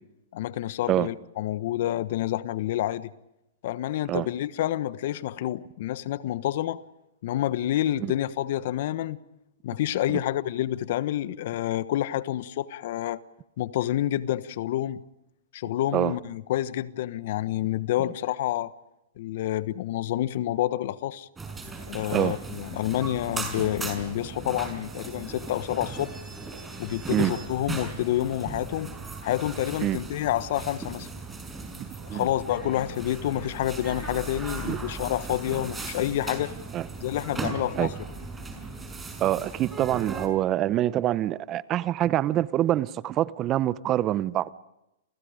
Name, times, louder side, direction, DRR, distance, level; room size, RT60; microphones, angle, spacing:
voice 1, 0.3-3.1 3.6-6.8 7.2-9.2 9.6-13.2 13.6-15.0 15.5-18.7 19.2-21.3 21.9-26.2 26.8-28.9 29.2-31.1 32.1-36.5 37.0-37.9, left 13 dB, 60° left, 1.2 m, -28 dB
sound 1, 21.4-40.3, right 3 dB, 10° right, 5.7 m, -37 dB
voice 2, 31.8-32.3 34.7-34.8 36.7-36.8 37.8-37.9 39.2-44.5, right 13 dB, 30° right, 0.8 m, -25 dB
29.0 x 28.5 x 5.1 m
hypercardioid pair, 125°, 0 cm